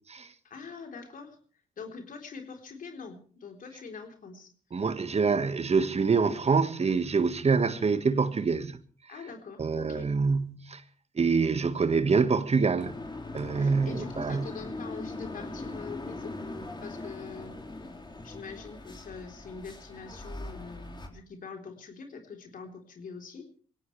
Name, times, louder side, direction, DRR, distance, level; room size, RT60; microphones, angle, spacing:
voice 1, 0.4-1.4 1.8-4.5 9.1-10.1 13.5-16.4 16.8-17.6 17.9-23.5, left 5 dB, 60° left, 3.9 m, -44 dB
voice 2, 4.7-8.8 9.6-10.8 11.2-12.9 13.3-14.5, right 5 dB, 40° right, 1.6 m, -26 dB
sound 1, 12.8-21.1, left 2 dB, 30° left, 4.5 m, -40 dB
23.0 x 17.5 x 3.3 m
hypercardioid pair, 40°, 16 cm